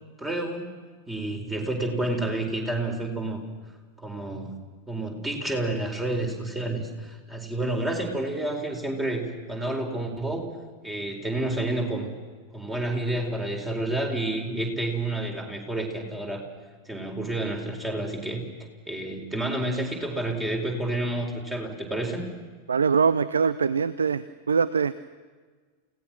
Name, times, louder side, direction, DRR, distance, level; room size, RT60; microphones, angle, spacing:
voice 1, 0.2-0.7 1.1-3.4 4.0-4.5 4.9-10.5 10.8-12.1 12.5-16.4 16.9-18.4 18.9-22.2, right 1 dB, 10° right, 3 dB, 4.3 m, -29 dB
voice 2, 22.7-24.9, right 6 dB, 70° right, 17 dB, 0.6 m, -23 dB
29.0 x 17.5 x 6.1 m, 1.4 s
figure-of-eight pair, 90°, 0 cm